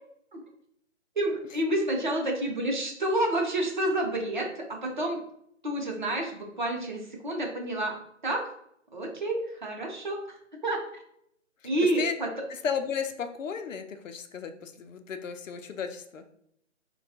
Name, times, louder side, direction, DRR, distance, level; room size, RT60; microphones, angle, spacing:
voice 1, 1.2-5.2 5.6-8.5 8.9-10.2 10.6-11.0 11.6-12.0, right 1 dB, 40° right, 0 dB, 0.8 m, -29 dB
voice 2, 11.8-12.1 12.5-16.2, left 6 dB, 90° left, 7 dB, 0.6 m, -34 dB
4.2 x 2.3 x 2.7 m, 0.72 s
hypercardioid pair, 175°, 37 cm